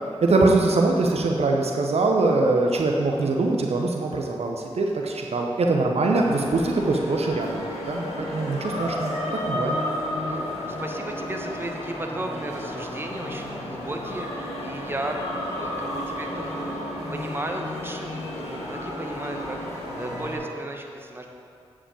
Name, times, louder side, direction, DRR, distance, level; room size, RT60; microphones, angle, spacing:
voice 1, 0.2-9.7, right 2 dB, 70° right, 1 dB, 0.9 m, -23 dB
sound 1, 6.1-20.4, left 1 dB, 80° left, 1.9 m, -32 dB
voice 2, 10.2-16.8 17.1-21.3, right 1 dB, 20° right, 2 dB, 1.2 m, -35 dB
8.3 x 5.0 x 7.5 m, 2.4 s
cardioid pair, 45°, 11 cm